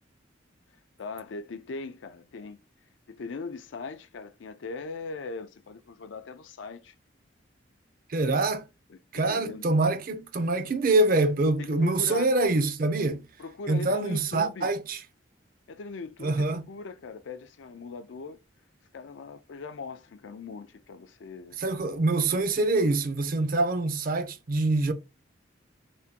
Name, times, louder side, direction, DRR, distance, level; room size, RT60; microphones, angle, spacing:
voice 1, 1.0-2.6 3.1-6.9 8.9-9.7 11.6-12.3 13.4-14.7 15.7-18.4 18.9-21.6, left 4 dB, 75° left, 0.4 m, -40 dB
voice 2, 8.1-8.6 9.1-13.2 13.7-15.0 16.2-16.6 21.6-24.9, right 2 dB, 45° right, 0.4 m, -25 dB
3.5 x 2.2 x 2.7 m
head